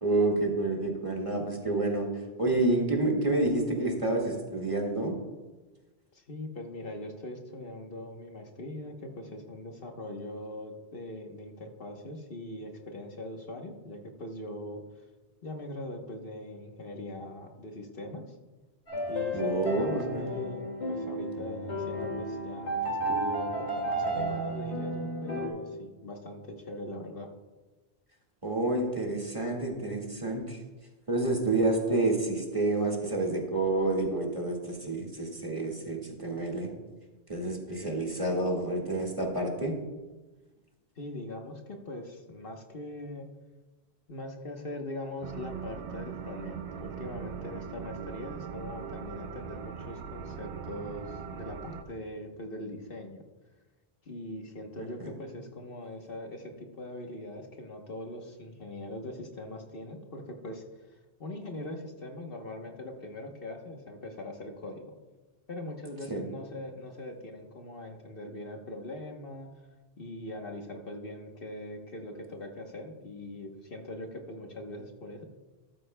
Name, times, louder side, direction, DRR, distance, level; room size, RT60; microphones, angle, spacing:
voice 1, 0.0-2.1 2.4-5.1 19.3-20.3 28.4-30.6 31.1-36.7 37.3-39.7 54.8-55.1 66.1-66.3, right 2 dB, 30° right, -1 dB, 1.9 m, -29 dB
voice 2, 6.1-14.8 15.4-18.4 19.1-27.3 41.0-43.3 44.1-53.2 54.0-60.6 61.2-65.0 65.5-69.5 70.0-75.2, left 1 dB, 60° left, 3 dB, 1.3 m, -41 dB
sound 1, 18.9-25.5, right 1 dB, 85° left, 2.5 m, -33 dB
sound 2, 45.2-51.8, right 7 dB, 90° right, 1.0 m, -40 dB
13.5 x 13.0 x 2.2 m, 1.2 s
omnidirectional pair, 1.1 m